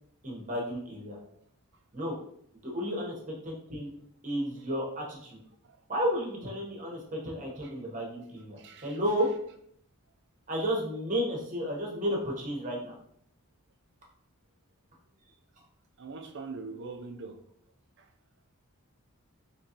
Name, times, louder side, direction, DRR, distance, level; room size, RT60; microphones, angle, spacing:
voice 1, 0.2-1.2 1.9-2.2 2.6-3.9 4.2-5.4 5.9-9.3 10.5-12.9, equal, 35° right, -2 dB, 1.0 m, -32 dB
voice 2, 8.6-8.9 16.0-17.4 18.0-18.1, right 4 dB, 50° right, 6 dB, 0.5 m, -42 dB
3.8 x 3.1 x 2.9 m, 0.68 s
head